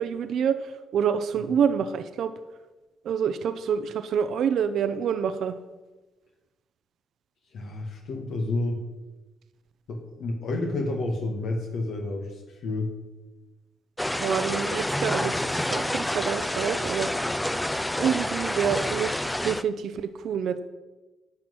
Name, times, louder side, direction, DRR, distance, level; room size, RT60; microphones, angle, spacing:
voice 1, 0.0-2.3 3.0-5.5 14.1-17.1 18.0-20.6, right 7 dB, 70° right, 10 dB, 0.7 m, -27 dB
voice 2, 7.5-8.8 9.9-12.9, left 2 dB, 75° left, 1 dB, 1.7 m, -30 dB
sound 1, 14.0-19.6, left 1 dB, 5° left, 0.5 m, -28 dB
10.5 x 6.0 x 8.0 m, 1.1 s
cardioid pair, 90°, 0 cm